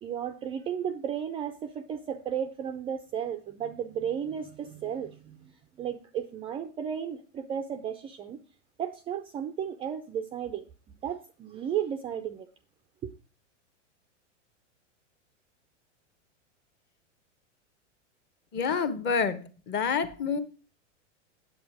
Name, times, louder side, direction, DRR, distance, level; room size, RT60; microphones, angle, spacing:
voice 1, 0.0-5.5 5.8-8.4 8.8-12.5 13.0-13.1, right 8 dB, 15° right, 0.4 m, -34 dB
voice 2, 18.5-19.4 19.7-20.4, left 6 dB, 30° left, 1.1 m, -27 dB
8.6 x 7.9 x 4.7 m
hypercardioid pair, 135°, 37 cm